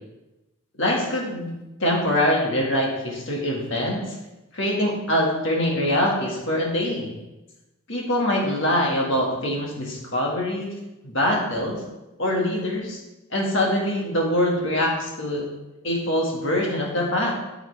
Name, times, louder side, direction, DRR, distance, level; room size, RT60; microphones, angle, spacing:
voice 1, 0.8-1.5 1.8-4.2 4.5-7.1 7.9-10.7 11.0-11.8 12.2-13.0 13.3-15.5 15.8-17.3, left 1 dB, 55° left, -1 dB, 1.8 m, -24 dB
8.0 x 8.0 x 3.4 m, 1.0 s
head